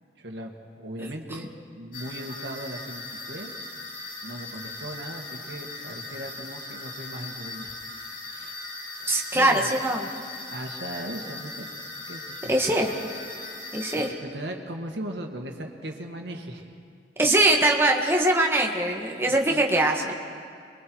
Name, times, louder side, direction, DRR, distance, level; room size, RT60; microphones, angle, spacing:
voice 1, 0.2-3.5 4.2-8.6 9.0-9.7 10.5-11.7 12.1-12.5 13.9-16.7 19.1-19.6, right 1 dB, 70° right, 2 dB, 2.1 m, -38 dB
sound 1, 1.9-14.1, left 3 dB, 50° left, 3.3 m, -39 dB
voice 2, 9.1-10.1 12.5-12.9 13.7-14.1 17.2-20.1, right 1 dB, 15° right, 0 dB, 1.8 m, -22 dB
28.0 x 22.5 x 4.8 m, 2.2 s
head